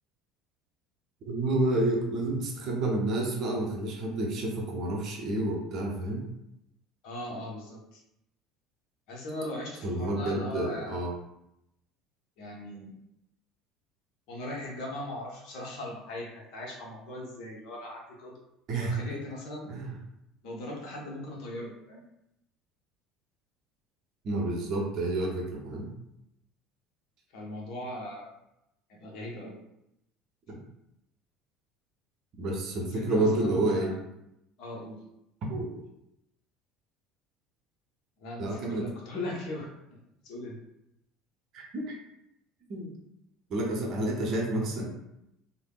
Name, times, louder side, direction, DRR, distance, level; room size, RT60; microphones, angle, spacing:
voice 1, 1.3-6.3 9.8-11.1 18.7-19.0 19.7-19.9 24.2-25.9 30.5-30.6 32.4-33.9 35.5-35.8 38.4-38.9 41.5-42.0 42.7-42.9 43.5-44.9, right 2 dB, 45° right, 0 dB, 0.7 m, -29 dB
voice 2, 7.0-8.0 9.1-11.0 12.4-12.9 14.3-18.4 18.8-19.7 20.4-22.0 27.3-28.3 28.9-29.6 32.8-34.0 34.6-35.0 38.2-40.6, left 1 dB, 55° left, -2 dB, 0.8 m, -39 dB
3.3 x 2.0 x 2.3 m, 0.83 s
figure-of-eight pair, 65°, 0 cm